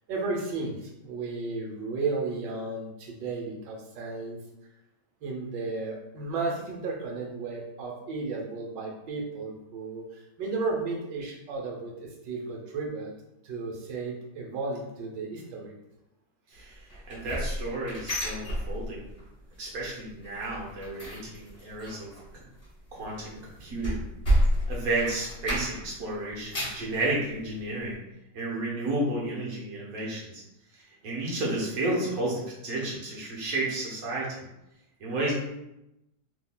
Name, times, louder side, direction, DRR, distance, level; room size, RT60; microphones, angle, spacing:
voice 1, 0.1-4.4 5.2-13.1 13.4-15.7, right 3 dB, 90° right, 0 dB, 1.4 m, -34 dB
sound 1, 16.9-19.2 19.5-19.9 20.2-26.0 26.3-26.9 27.4-27.5 27.9-28.0, equal, 30° left, 0.8 m, -30 dB
voice 2, 17.1-19.0 19.6-22.1 22.9-24.0 24.7-28.0 28.3-30.4 30.7-34.5 35.0-35.3, right 2 dB, 60° right, -4 dB, 1.3 m, -32 dB
3.7 x 3.2 x 2.2 m, 0.89 s
omnidirectional pair, 1.8 m